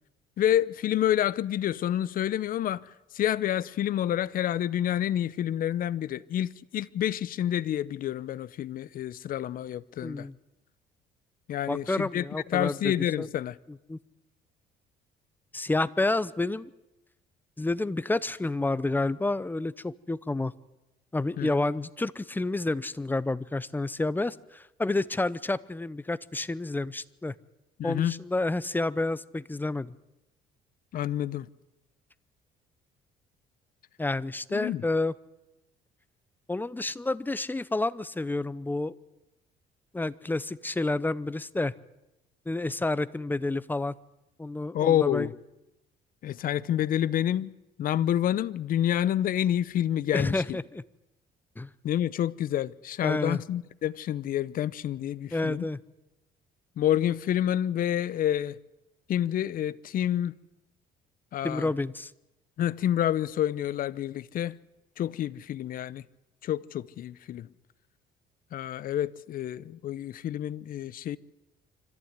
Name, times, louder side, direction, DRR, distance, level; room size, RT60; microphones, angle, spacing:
voice 1, 0.4-2.9 3.1-10.3 11.5-13.6 21.4-21.6 27.8-28.2 30.9-31.5 34.5-34.8 44.7-45.3 46.2-47.5 47.8-50.6 51.8-55.7 56.8-58.6 59.1-60.4 61.3-61.7 62.6-64.6 65.0-66.0 66.4-67.5 68.5-71.2, left 11 dB, 55° left, 0.8 m, -28 dB
voice 2, 10.0-10.3 11.7-12.9 13.2-13.3 13.9-14.0 15.5-16.7 17.6-20.5 21.1-27.3 27.8-29.9 34.0-35.1 36.5-38.9 39.9-41.7 42.5-43.9 44.4-45.3 50.1-50.8 51.6-51.7 53.0-53.4 55.3-55.8 61.4-62.1, left 2 dB, 10° left, 0.7 m, -29 dB
25.0 x 14.5 x 9.5 m
cardioid pair, 110°, 17 cm